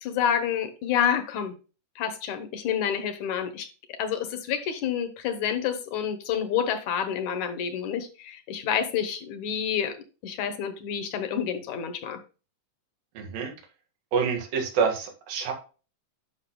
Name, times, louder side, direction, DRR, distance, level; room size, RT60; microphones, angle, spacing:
voice 1, 0.0-1.5 2.0-10.0 10.2-12.2, left 8 dB, 70° left, 9 dB, 2.1 m, -28 dB
voice 2, 13.1-13.5 14.1-15.5, right 6 dB, 85° right, 3 dB, 3.4 m, -27 dB
11.0 x 6.0 x 2.2 m, 0.34 s
omnidirectional pair, 3.9 m